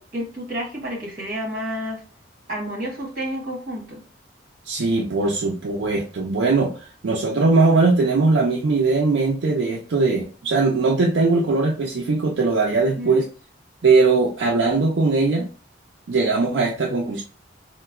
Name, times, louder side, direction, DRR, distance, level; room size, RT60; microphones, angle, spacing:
voice 1, 0.0-2.0 2.5-4.0 13.0-13.2, equal, 50° right, -2 dB, 1.2 m, -30 dB
voice 2, 4.7-6.7 7.0-13.2 13.8-15.4 16.1-17.2, right 3 dB, 70° right, -1 dB, 0.5 m, -20 dB
3.8 x 2.1 x 2.3 m, 0.37 s
head